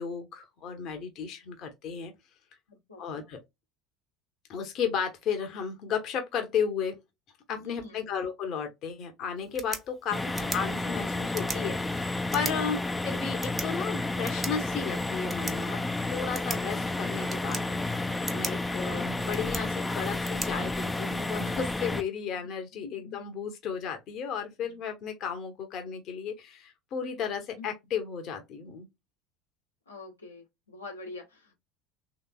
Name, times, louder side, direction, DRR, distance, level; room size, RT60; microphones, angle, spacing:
voice 1, 0.0-2.1 3.0-3.4 4.5-7.0 7.5-15.8 16.1-28.9, left 7 dB, 50° left, 0.8 m, -34 dB
voice 2, 2.7-3.3 7.6-8.1 18.8-19.0 22.8-23.2 24.6-24.7 27.5-27.7 29.9-31.5, left 3 dB, 90° left, 1.0 m, -45 dB
sound 1, 9.4-21.4, right 3 dB, 20° right, 0.9 m, -42 dB
sound 2, 10.1-22.0, left 2 dB, 10° left, 0.4 m, -31 dB
3.2 x 2.9 x 2.2 m
figure-of-eight pair, 70°, 0 cm